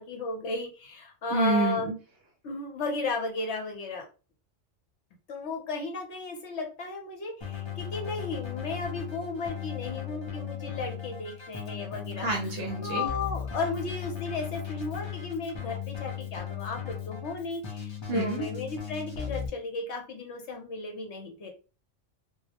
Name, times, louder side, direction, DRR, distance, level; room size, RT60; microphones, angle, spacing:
voice 1, 0.0-1.9 2.4-4.1 5.3-12.3 12.8-21.5, left 3 dB, 70° left, 1 dB, 1.0 m, -34 dB
voice 2, 1.3-2.0 12.2-13.1 18.1-18.5, right 3 dB, 65° right, 2 dB, 0.7 m, -28 dB
Keyboard (musical), 7.4-19.5, left 9 dB, 40° left, 0.4 m, -37 dB
2.3 x 2.0 x 2.8 m, 0.34 s
omnidirectional pair, 1.2 m